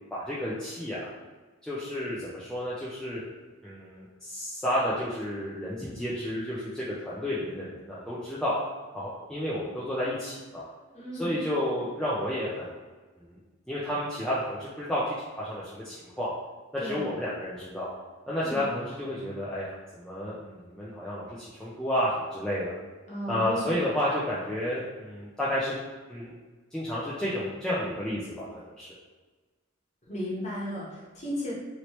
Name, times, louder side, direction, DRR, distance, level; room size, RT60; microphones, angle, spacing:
voice 1, 0.1-1.1 1.6-3.2 3.6-8.6 8.9-10.7 11.1-12.7 13.3-13.4 13.7-16.3 16.7-17.9 18.3-22.7 23.3-25.8 26.1-26.3 26.7-28.9, left 1 dB, 5° left, -9 dB, 0.4 m, -31 dB
voice 2, 10.9-11.3 16.8-17.0 18.4-18.6 23.1-23.8 30.1-31.5, equal, 30° left, -7 dB, 1.0 m, -34 dB
2.9 x 2.9 x 3.0 m, 1.3 s
head